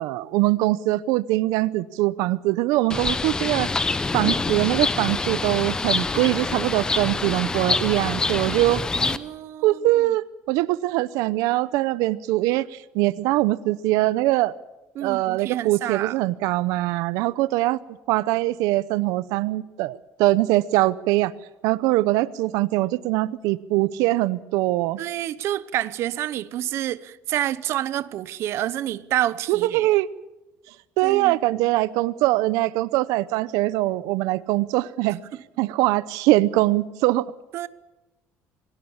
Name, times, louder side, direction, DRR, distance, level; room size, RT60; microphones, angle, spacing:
voice 1, 0.0-3.7 4.1-8.8 9.6-14.5 15.0-17.8 18.1-21.3 21.6-25.0 29.5-30.1 31.0-35.2 35.6-37.2, right 17 dB, 85° right, 0.7 m, -22 dB
Bird, 2.9-9.2, left 3 dB, 10° left, 0.8 m, -26 dB
voice 2, 8.9-9.8 15.0-16.1 25.0-29.9 31.0-31.6 37.5-37.7, right 13 dB, 50° right, 0.9 m, -28 dB
27.5 x 18.0 x 7.2 m
cardioid pair, 175°, 6 cm